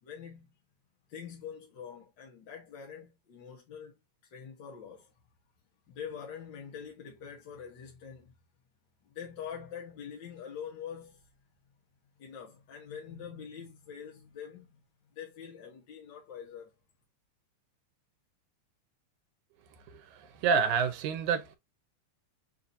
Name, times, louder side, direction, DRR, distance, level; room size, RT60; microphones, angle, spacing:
voice 1, 0.0-0.5 1.1-3.9 4.3-5.1 5.9-8.3 9.0-11.2 12.2-14.8 15.1-16.7, left 7 dB, 55° left, 1.3 m, -44 dB
voice 2, 19.9-21.6, right 6 dB, 85° right, 2.3 m, -29 dB
6.7 x 2.6 x 2.6 m
omnidirectional pair, 3.3 m